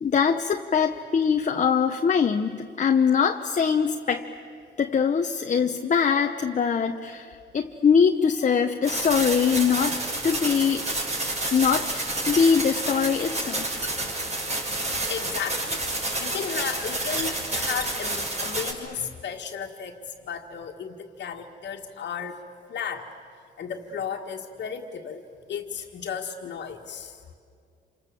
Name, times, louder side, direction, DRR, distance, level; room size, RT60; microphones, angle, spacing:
voice 1, 0.0-4.3 4.8-10.9 11.5-13.8, left 6 dB, 40° left, 5 dB, 0.9 m, -23 dB
sound 1, 8.8-18.7, right 2 dB, 35° right, 5.6 m, -29 dB
voice 2, 13.9-22.4 22.7-23.1 23.6-25.2 25.5-27.3, left 7 dB, 65° left, -2 dB, 1.8 m, -34 dB
27.5 x 27.5 x 7.6 m, 2.3 s
cardioid pair, 90°, 20 cm